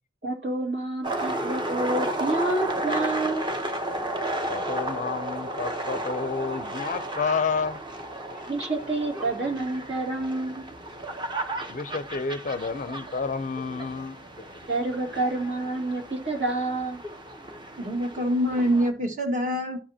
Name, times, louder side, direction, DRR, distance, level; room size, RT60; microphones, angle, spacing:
voice 1, 0.2-3.5 8.5-10.6 14.7-17.0, right 2 dB, 65° right, 2.5 m, -28 dB
sound 1, 1.0-18.9, right 1 dB, 25° right, 0.9 m, -33 dB
voice 2, 4.5-7.8 11.7-14.2, left 4 dB, 40° left, 0.5 m, -30 dB
voice 3, 17.8-19.8, equal, 45° right, 1.7 m, -25 dB
13.0 x 5.0 x 2.8 m
head